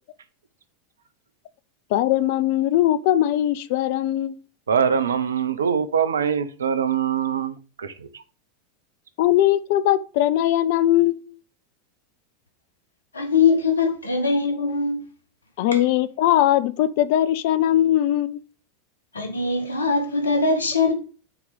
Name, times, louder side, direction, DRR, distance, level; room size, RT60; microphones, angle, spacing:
voice 1, 1.9-4.4 9.2-11.4 15.6-18.4, left 13 dB, 55° left, 0.5 m, -20 dB
voice 2, 4.7-7.9, right 7 dB, 75° right, 0.8 m, -23 dB
voice 3, 13.1-15.0 19.1-20.9, left 4 dB, 80° left, 1.7 m, -21 dB
6.0 x 4.6 x 5.4 m
figure-of-eight pair, 85°, 0 cm